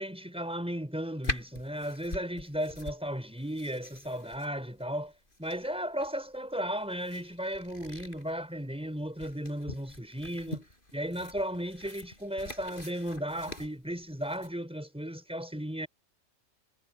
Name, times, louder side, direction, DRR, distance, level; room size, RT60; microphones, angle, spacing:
voice 1, 0.0-5.1 5.4-15.9, equal, 5° right, 4.6 m, -35 dB
sound 1, 1.2-14.5, left 1 dB, 40° left, 6.3 m, -44 dB
omnidirectional pair, 1.3 m